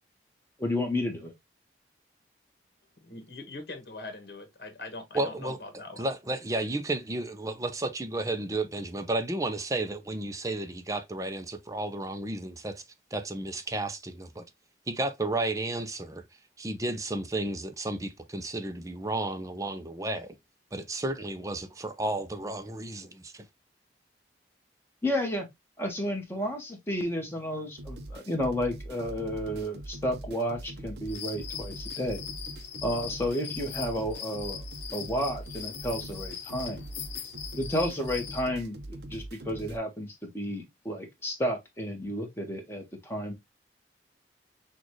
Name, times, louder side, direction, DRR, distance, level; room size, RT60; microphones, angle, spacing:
voice 1, 0.6-1.3 25.0-25.5 25.8-32.2 32.8-34.6 34.9-36.8 37.5-43.4, equal, 15° left, 1.3 m, -32 dB
voice 2, 3.0-6.1, left 2 dB, 60° left, 1.4 m, -42 dB
voice 3, 5.1-5.6 6.0-12.8 13.1-14.5 14.9-16.2 16.6-20.4 20.7-23.5, right 2 dB, 20° right, 0.6 m, -32 dB
sound 1, 27.8-39.8, right 1 dB, 70° right, 0.8 m, -42 dB
sound 2, 31.1-38.5, left 8 dB, 85° left, 0.8 m, -40 dB
6.2 x 2.5 x 3.0 m
head